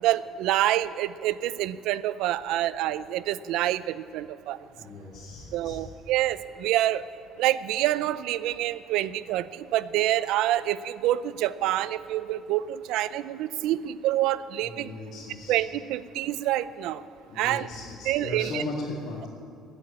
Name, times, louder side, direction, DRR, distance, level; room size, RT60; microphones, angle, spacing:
voice 1, 0.0-4.6 5.5-7.0 7.4-14.9 15.5-17.0 17.4-17.7 18.1-18.6, right 14 dB, 80° right, 16 dB, 0.5 m, -27 dB
voice 2, 4.7-5.8 14.6-15.6 17.3-19.3, left 2 dB, 55° left, -5 dB, 2.7 m, -37 dB
16.5 x 8.6 x 8.6 m, 2.4 s
cardioid pair, 140°, 0 cm